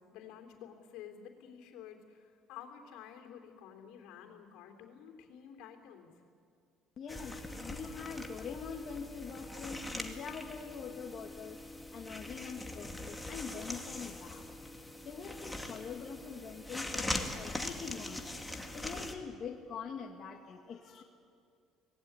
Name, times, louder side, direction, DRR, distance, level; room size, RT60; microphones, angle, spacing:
voice 1, 0.1-6.1, left 8 dB, 80° left, 4 dB, 3.6 m, -51 dB
voice 2, 7.0-11.6 11.9-14.5 15.0-18.4 18.7-21.0, left 6 dB, 45° left, 2 dB, 1.8 m, -44 dB
sound 1, 7.1-19.1, left 1 dB, 5° left, 2.3 m, -42 dB
24.5 x 19.0 x 9.7 m, 2.4 s
cardioid pair, 110°, 0 cm